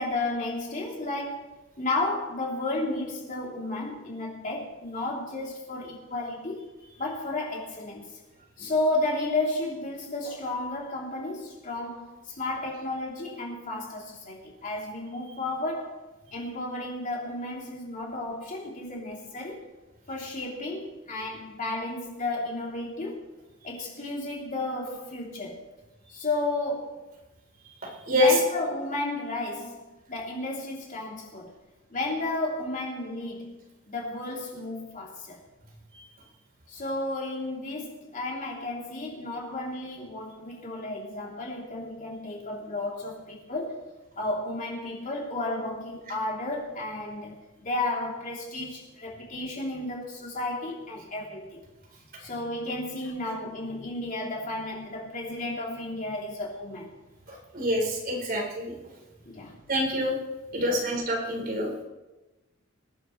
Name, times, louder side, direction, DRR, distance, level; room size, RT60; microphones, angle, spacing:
voice 1, 0.0-1.5 1.8-6.7 7.0-8.1 8.6-16.0 16.3-19.7 20.1-23.3 23.6-25.6 26.1-27.0 28.1-29.8 30.1-31.5 31.9-33.6 33.9-35.4 36.7-43.9 44.2-51.6 52.2-57.0 59.2-59.5 60.0-60.1 60.6-60.8, left 2 dB, 40° left, -2 dB, 3.4 m, -33 dB
voice 2, 57.3-58.7 59.7-60.1 60.5-61.7, left 1 dB, 45° right, -2 dB, 4.1 m, -26 dB
25.5 x 10.5 x 3.3 m, 1.1 s
head